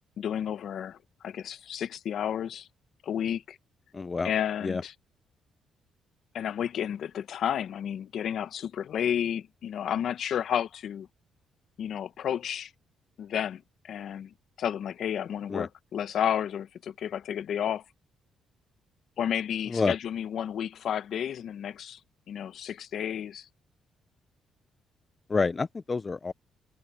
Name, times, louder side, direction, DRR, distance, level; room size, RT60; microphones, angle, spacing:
voice 1, 0.2-1.0 1.2-2.7 3.0-3.6 4.2-4.9 6.3-11.1 11.8-12.7 13.2-14.3 14.6-17.8 19.2-22.0 22.3-23.5, left 9 dB, 65° left, 1.1 m, -31 dB
voice 2, 3.9-4.3 4.6-4.8 15.5-15.7 19.7-19.9 25.3-26.3, left 4 dB, 30° left, 0.5 m, -28 dB
cardioid pair, 90°, 0 cm